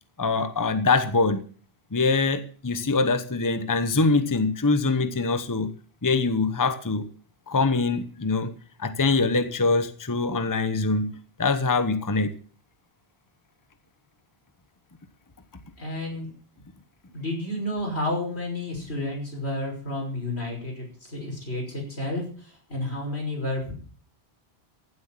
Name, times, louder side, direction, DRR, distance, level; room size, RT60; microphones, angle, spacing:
voice 1, 0.2-1.4 1.9-5.7 6.0-7.1 7.5-8.5 8.8-11.1 11.4-12.3, left 3 dB, 20° left, 10 dB, 0.9 m, -23 dB
voice 2, 15.8-16.3 17.1-23.7, left 1 dB, 85° left, 0 dB, 6.0 m, -31 dB
15.5 x 7.8 x 7.4 m, 0.42 s
omnidirectional pair, 1.1 m